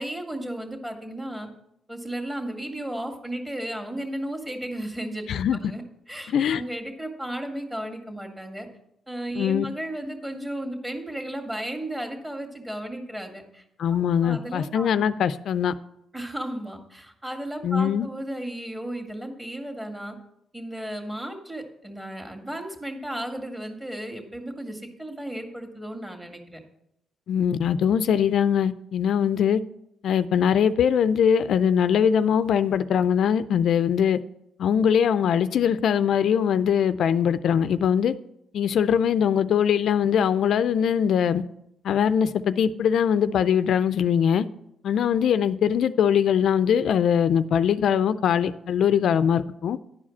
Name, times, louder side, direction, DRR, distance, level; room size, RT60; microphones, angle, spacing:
voice 1, 0.0-1.5 1.9-5.3 5.5-5.8 6.1-8.7 9.1-13.6 13.9-14.9 16.1-20.2 20.5-26.6, right 1 dB, 10° right, 2.0 m, -34 dB
voice 2, 5.3-5.6 6.3-6.6 9.4-9.7 13.8-15.7 17.6-18.1 27.3-29.6 30.0-34.2 34.6-38.1 38.5-41.4 41.8-44.4 44.8-49.8, left 8 dB, 70° left, 0.4 m, -22 dB
11.0 x 4.9 x 7.1 m
cardioid pair, 90°, 0 cm